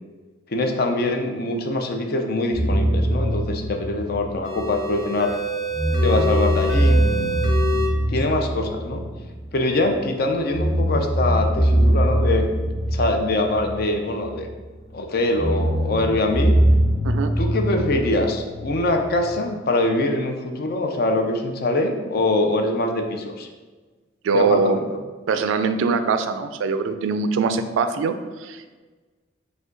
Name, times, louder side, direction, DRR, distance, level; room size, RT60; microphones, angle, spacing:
voice 1, 0.5-5.4 6.0-7.0 8.1-9.0 9.5-12.4 12.9-14.5 14.9-16.5 17.4-23.5 24.3-24.9, left 2 dB, 50° left, 4 dB, 0.5 m, -23 dB
sound 1, 2.5-5.3 5.7-10.0 10.5-14.6 15.3-19.3, right 1 dB, 25° left, 0.8 m, -22 dB
sound 2, 4.4-7.9, equal, 90° left, 0.9 m, -27 dB
voice 2, 24.2-24.8 25.3-28.8, right 5 dB, 80° right, 9 dB, 0.3 m, -22 dB
4.9 x 2.2 x 3.8 m, 1.3 s
head